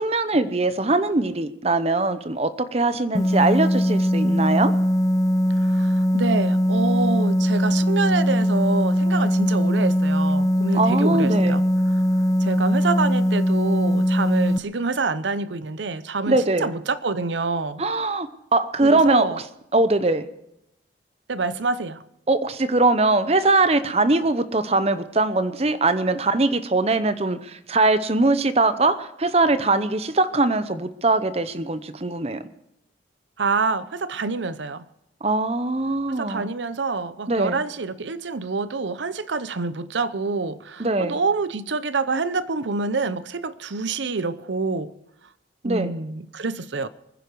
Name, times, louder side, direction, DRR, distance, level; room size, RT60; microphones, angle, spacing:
voice 1, 0.0-4.8 10.7-11.6 16.3-16.7 17.8-19.4 19.7-20.3 22.3-32.4 35.2-36.5 37.3-37.6 40.8-41.2 45.6-45.9, right 2 dB, 35° right, 0.8 m, -21 dB
sound 1, 3.1-14.6, equal, 20° left, 0.5 m, -20 dB
voice 2, 5.6-11.6 12.4-17.8 18.8-19.4 21.3-22.0 33.4-34.8 36.1-44.9 45.6-46.9, right 4 dB, 85° right, 0.7 m, -27 dB
23.5 x 10.5 x 4.7 m
head